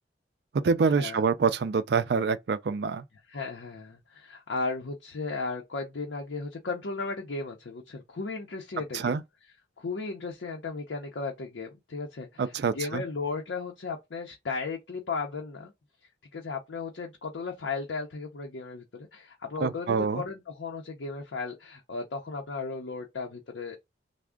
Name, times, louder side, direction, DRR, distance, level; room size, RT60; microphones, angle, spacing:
voice 1, 0.6-3.0 8.9-9.2 12.4-13.0 19.6-20.2, right 5 dB, 65° right, 0.4 m, -26 dB
voice 2, 3.3-9.2 9.8-15.7 16.3-23.9, left 4 dB, 85° left, 0.6 m, -35 dB
3.5 x 2.1 x 3.5 m
head